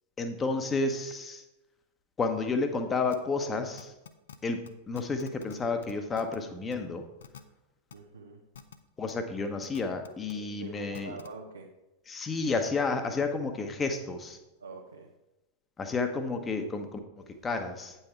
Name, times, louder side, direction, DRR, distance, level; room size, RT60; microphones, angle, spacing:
voice 1, 0.2-1.4 2.2-3.9 4.4-4.6 4.9-7.0 9.0-11.1 12.1-14.4 15.8-17.0 17.4-18.0, left 3 dB, 20° left, 6 dB, 1.0 m, -31 dB
sound 1, 3.1-3.2 3.8-4.4 4.7-4.8 5.0-5.6 5.8-6.4 6.7-6.8 7.2-7.4 7.9-8.0 8.5-8.8 9.1-9.2 9.6-10.3 10.9-11.3, left 8 dB, 65° left, 0.5 m, -46 dB
voice 2, 7.9-8.4 10.3-11.7 14.6-15.1, right 3 dB, 80° right, -4 dB, 0.9 m, -45 dB
8.9 x 5.7 x 4.4 m, 0.99 s
figure-of-eight pair, 90°, 0 cm